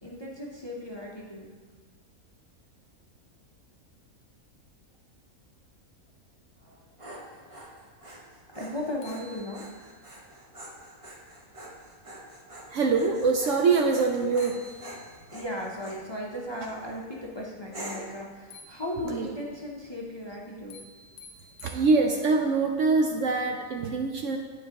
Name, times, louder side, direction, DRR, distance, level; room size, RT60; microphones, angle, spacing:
voice 1, 0.0-1.5 8.5-9.7 15.3-20.8, left 1 dB, 30° left, -3 dB, 0.5 m, -36 dB
Dog, 6.6-16.1 16.6-17.0 17.7-18.2, right 1 dB, 25° right, 0.8 m, -45 dB
sound 1, 8.6-8.7 9.0-10.1 14.0-14.1 14.4-15.4 18.5-19.4 20.7-22.4, left 2 dB, 80° left, 1.0 m, -51 dB
voice 2, 12.7-14.5 19.1-19.3 21.6-24.4, right 4 dB, 65° right, 2 dB, 0.8 m, -24 dB
10.5 x 5.0 x 2.9 m, 1.5 s
omnidirectional pair, 1.5 m